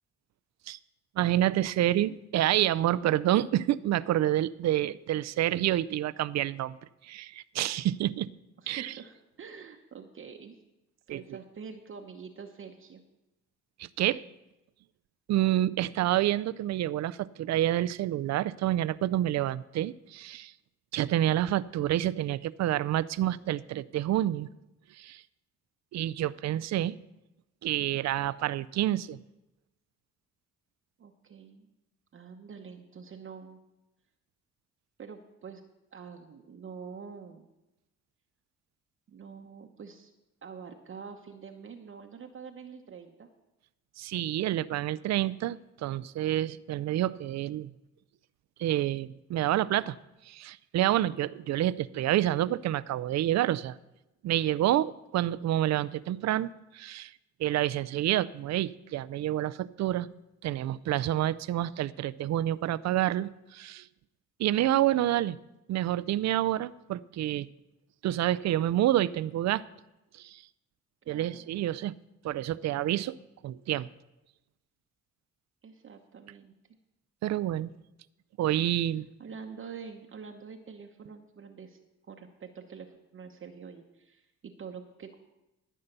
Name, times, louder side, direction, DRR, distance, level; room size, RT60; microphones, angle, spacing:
voice 1, 1.2-6.8 7.0-8.3 8.7-8.9 11.1-11.2 13.8-14.2 15.3-20.5 20.9-24.5 24.9-25.2 25.9-26.9 27.6-29.2 44.0-47.7 48.6-50.0 50.3-53.8 54.2-57.1 57.4-60.1 60.4-63.9 64.4-65.4 65.7-67.5 68.0-69.6 70.1-70.4 71.1-71.9 72.2-73.2 73.4-73.9 77.2-77.7 78.4-79.1, right 13 dB, 65° right, 18 dB, 0.5 m, -28 dB
voice 2, 8.6-10.6 11.1-13.0 31.0-31.7 32.1-33.6 35.0-35.6 35.9-37.5 39.1-40.1 40.4-43.3 71.1-71.4 75.6-76.5 79.2-81.8 82.1-85.2, right 6 dB, 45° right, 3 dB, 0.9 m, -46 dB
13.5 x 5.5 x 6.7 m, 0.95 s
cardioid pair, 90°, 30 cm